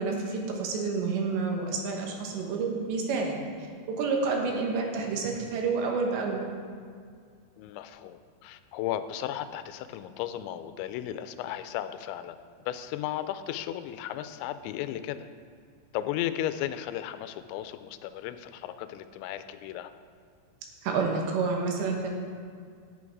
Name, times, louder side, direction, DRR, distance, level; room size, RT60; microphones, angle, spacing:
voice 1, 0.0-3.4 3.9-6.5 20.8-22.1, right 4 dB, 75° right, 1 dB, 3.4 m, -29 dB
voice 2, 7.6-12.4 12.7-15.3 15.9-19.9, left 12 dB, 90° left, 11 dB, 2.9 m, -35 dB
10.5 x 8.6 x 4.7 m, 2.1 s
omnidirectional pair, 5.1 m